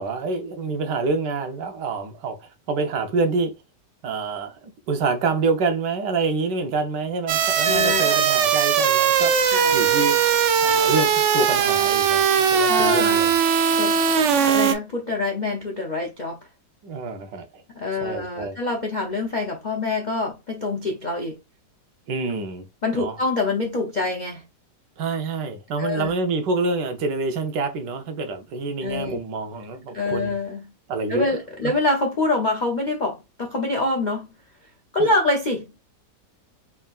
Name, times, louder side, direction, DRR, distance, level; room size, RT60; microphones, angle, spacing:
voice 1, 0.0-3.5 4.0-10.2 10.6-13.3 16.8-17.6 18.0-18.5 22.1-22.6 22.9-23.2 25.0-30.3 30.9-31.3 31.6-31.7 35.0-35.1, right 3 dB, 90° right, 1.5 m, -27 dB
sound 1, 7.3-14.7, right 7 dB, 70° right, 0.7 m, -19 dB
voice 2, 7.6-8.2 9.5-9.8 12.7-13.3 13.8-14.0 14.4-16.4 17.7-21.3 22.8-24.4 25.8-26.1 28.8-29.2 29.9-30.7 31.1-34.3 34.9-35.6, left 2 dB, 60° left, 0.4 m, -25 dB
4.2 x 3.5 x 2.4 m
omnidirectional pair, 1.8 m